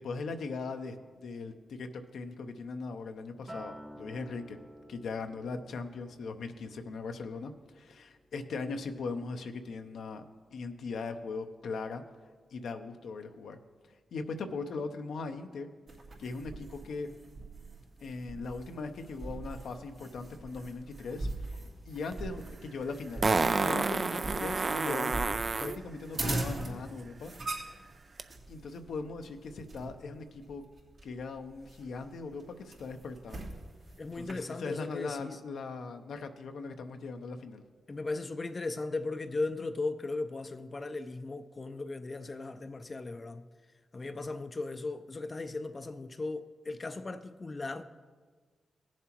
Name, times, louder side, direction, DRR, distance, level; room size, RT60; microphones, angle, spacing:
voice 1, 0.0-4.6 4.9-10.2 10.5-12.0 12.5-13.6 14.1-15.7 16.2-17.1 18.0-23.3 23.6-27.3 28.5-30.6 31.0-33.5 34.1-37.6, left 4 dB, 80° left, 0.6 m, -39 dB
Acoustic guitar, 3.5-7.9 8.3-8.7, equal, 25° right, 1.1 m, -51 dB
sound 1, 15.9-34.3, right 2 dB, 70° right, 2.8 m, -42 dB
Fart, 22.1-22.2 23.2-25.8 28.2-28.3, right 4 dB, 50° right, 0.4 m, -29 dB
voice 2, 34.0-35.4 37.9-43.4 43.9-47.8, left 3 dB, 40° left, 0.5 m, -37 dB
17.0 x 7.3 x 3.0 m
cardioid pair, 50°, 0 cm